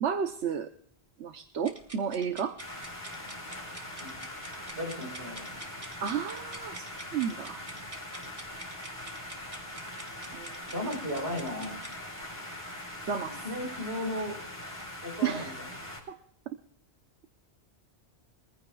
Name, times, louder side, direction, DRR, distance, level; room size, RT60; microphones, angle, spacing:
voice 1, 0.0-0.7 1.2-2.6 6.0-6.9 7.1-7.6 10.3-10.6 13.1-13.5 15.2-15.5 16.1-16.2, right 7 dB, 85° right, 8 dB, 1.2 m, -32 dB
sound 1, 1.6-12.0, right 1 dB, 30° right, 1.9 m, -47 dB
sound 2, 2.6-16.0, left 1 dB, 15° left, 4.2 m, -42 dB
voice 2, 4.7-5.6 10.7-11.8 13.3-14.4 15.0-15.5, left 1 dB, 70° right, 2 dB, 4.7 m, -35 dB
23.0 x 15.0 x 2.4 m, 0.65 s
omnidirectional pair, 1.1 m